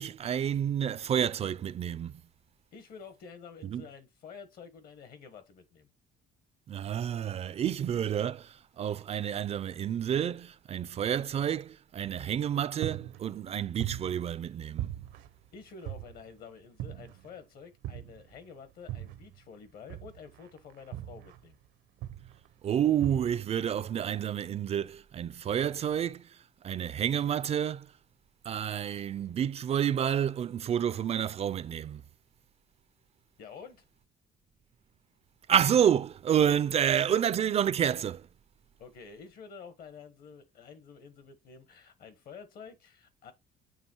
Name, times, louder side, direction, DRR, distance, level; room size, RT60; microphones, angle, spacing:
voice 1, 0.0-2.2 3.6-3.8 6.7-14.9 22.6-27.9 28.4-32.0 35.5-38.3, right 9 dB, 40° right, 0.3 m, -29 dB
voice 2, 2.7-5.9 15.5-21.6 33.4-33.8 36.8-37.2 38.8-43.3, left 6 dB, 60° left, 1.4 m, -49 dB
sound 1, 12.0-12.5 12.8-14.5 14.8-16.4 16.8-17.4 17.8-19.4 19.9-21.7 22.0-22.5 23.0-23.6, right 13 dB, 90° right, 0.8 m, -40 dB
7.2 x 3.1 x 4.5 m
cardioid pair, 110°, 17 cm